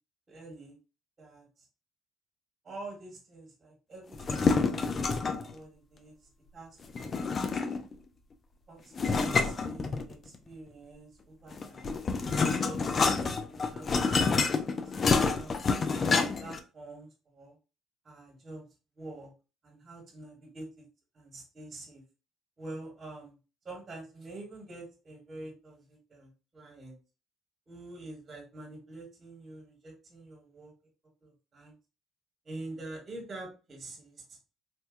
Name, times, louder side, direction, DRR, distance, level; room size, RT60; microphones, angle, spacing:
voice 1, 0.3-0.7 1.2-1.7 2.6-6.1 6.5-7.8 8.7-11.9 12.6-15.5 16.1-17.5 18.0-18.6 18.9-19.3 19.6-20.8 21.1-22.0 22.6-23.3 23.6-27.0 27.7-30.7 31.2-31.7 32.4-34.4, right 2 dB, 30° right, -1 dB, 1.4 m, -46 dB
sound 1, 4.1-5.5 6.9-7.9 9.0-10.3 11.5-16.6, left 4 dB, 35° left, 0.4 m, -28 dB
4.3 x 2.3 x 2.4 m, 0.32 s
cardioid pair, 125°, 0 cm